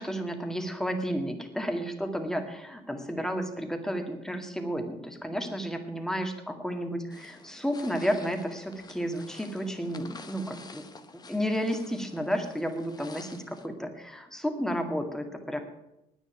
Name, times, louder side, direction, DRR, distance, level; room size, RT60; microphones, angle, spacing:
voice 1, 0.0-10.9 11.3-15.6, equal, 5° left, 5 dB, 1.9 m, -32 dB
sound 1, 7.1-13.7, left 4 dB, 25° left, 1.2 m, -49 dB
10.0 x 9.4 x 9.0 m, 0.89 s
cardioid pair, 110°, 17 cm